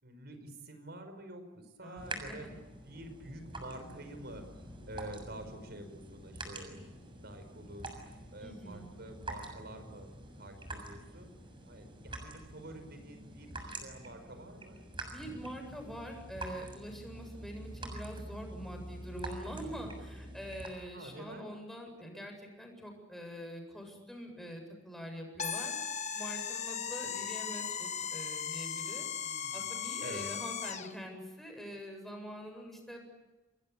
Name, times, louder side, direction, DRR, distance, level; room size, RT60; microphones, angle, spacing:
voice 1, 0.0-4.5 4.8-7.9 8.3-11.3 11.7-14.9 20.9-21.5 29.2-29.7 30.0-30.3, right 1 dB, 60° right, 8 dB, 5.4 m, -48 dB
voice 2, 1.8-2.5 8.4-9.0 15.1-25.7 26.1-29.1 29.5-33.1, equal, ahead, 2 dB, 7.9 m, -45 dB
sound 1, 2.0-20.7, right 1 dB, 25° right, 6.9 m, -46 dB
sound 2, 25.4-30.9, left 7 dB, 40° left, 1.3 m, -37 dB
29.0 x 21.5 x 8.8 m, 1.1 s
head